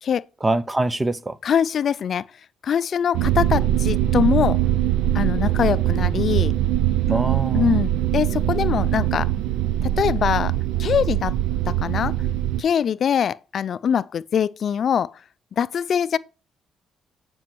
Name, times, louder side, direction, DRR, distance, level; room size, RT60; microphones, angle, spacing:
voice 1, 0.4-1.4 7.1-7.8, right 2 dB, 20° right, 0.7 m, -24 dB
voice 2, 1.4-2.2 2.6-4.6 5.1-6.5 7.5-9.3 9.8-10.5 10.8-11.4 11.7-12.2 12.6-15.1 15.6-16.2, left 8 dB, 55° left, 0.4 m, -23 dB
sound 1, 3.1-12.6, right 12 dB, 90° right, 0.4 m, -22 dB
9.2 x 6.1 x 4.5 m
cardioid pair, 90°, 0 cm